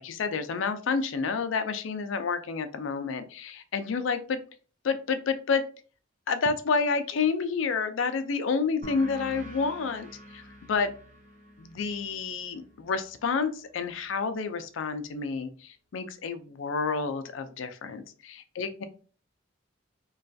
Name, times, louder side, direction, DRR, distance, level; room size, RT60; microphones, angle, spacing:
voice 1, 0.0-4.4 4.8-5.6 6.3-10.1 10.3-10.4 10.7-10.9 11.6-18.8, left 5 dB, 75° left, 9 dB, 0.4 m, -29 dB
sound 1, 8.8-14.0, equal, 40° right, 0.6 m, -48 dB
3.1 x 2.2 x 2.5 m, 0.38 s
head